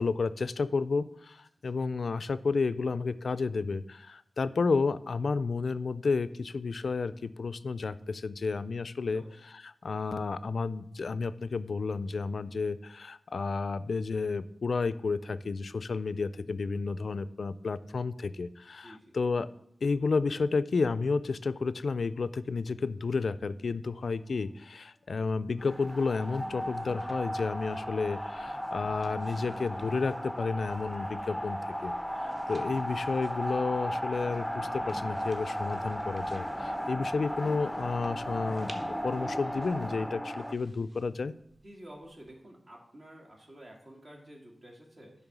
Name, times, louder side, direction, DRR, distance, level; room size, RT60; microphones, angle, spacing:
voice 1, 0.0-19.5 19.8-41.3, left 4 dB, 75° left, 15 dB, 0.3 m, -31 dB
sound 1, 25.1-42.3, right 1 dB, 35° right, 1.2 m, -59 dB
sound 2, 25.6-40.5, equal, ahead, 0.5 m, -35 dB
voice 2, 41.6-45.1, right 1 dB, 60° right, -1 dB, 2.1 m, -50 dB
10.5 x 3.5 x 6.0 m, 0.72 s
cardioid pair, 55°, 0 cm